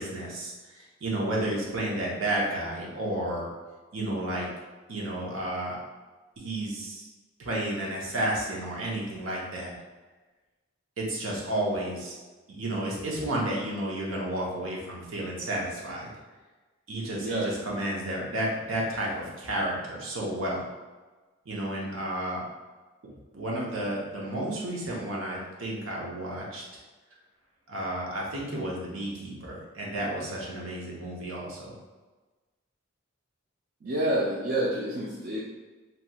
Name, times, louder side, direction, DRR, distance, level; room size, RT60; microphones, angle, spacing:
voice 1, 0.0-3.5 3.9-4.5 4.9-5.8 6.4-7.1 7.4-9.7 11.0-12.1 12.5-16.1 16.9-20.6 21.5-22.4 23.3-26.6 27.7-31.7, right 1 dB, 85° right, -3 dB, 0.7 m, -32 dB
voice 2, 17.2-17.5 33.8-35.4, right 1 dB, 50° right, -5 dB, 0.4 m, -28 dB
3.0 x 2.8 x 2.2 m, 1.2 s
head